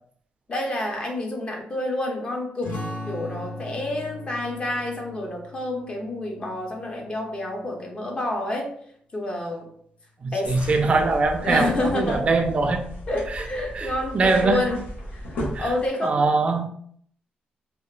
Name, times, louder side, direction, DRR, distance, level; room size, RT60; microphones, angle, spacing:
voice 1, 0.5-2.8 3.1-8.7 9.1-9.7 10.3-10.5 10.8-11.0 11.4-12.2 13.1-14.8 15.1-16.2, left 2 dB, 35° left, 1 dB, 0.6 m, -28 dB
sound 1, 2.6-7.8, left 1 dB, 60° left, 1.0 m, -38 dB
voice 2, 10.2-12.9 13.3-13.4 13.7-14.7 15.5-15.7 16.0-16.7, right 3 dB, 40° right, 5 dB, 0.3 m, -22 dB
sound 2, 10.4-15.9, left 1 dB, 85° left, 0.7 m, -35 dB
2.8 x 2.1 x 2.3 m, 0.63 s
cardioid pair, 110°, 3 cm